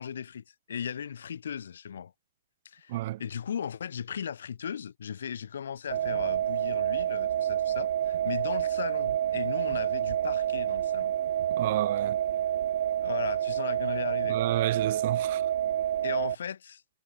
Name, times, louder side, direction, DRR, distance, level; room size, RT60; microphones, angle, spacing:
voice 1, 0.0-2.1 2.6-11.1 13.0-14.4 16.0-16.8, left 8 dB, 80° left, 4.9 m, -37 dB
voice 2, 2.9-3.2 11.5-12.2 14.3-15.4, right 16 dB, 45° right, 6.4 m, -31 dB
sound 1, 5.9-16.3, right 10 dB, 60° right, 2.4 m, -28 dB
hypercardioid pair, 160°, 0 cm